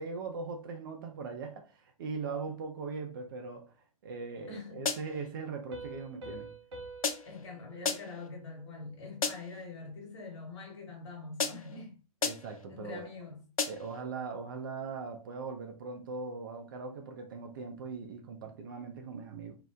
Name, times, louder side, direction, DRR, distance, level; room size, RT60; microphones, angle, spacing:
voice 1, 0.0-3.7 4.0-6.5 12.2-13.1 13.6-19.6, right 4 dB, 35° right, 0.5 m, -40 dB
voice 2, 4.5-4.8 7.0-12.0 12.7-13.4, left 3 dB, 50° left, 1.3 m, -44 dB
sound 1, 4.9-5.3 7.0-7.5 7.8-8.3 9.2-9.6 11.4-11.8 12.2-12.6 13.6-14.0, left 5 dB, 70° left, 0.5 m, -34 dB
Piano, 5.7-9.1, right 2 dB, 50° right, 0.9 m, -48 dB
2.8 x 2.0 x 3.5 m
figure-of-eight pair, 120°, 19 cm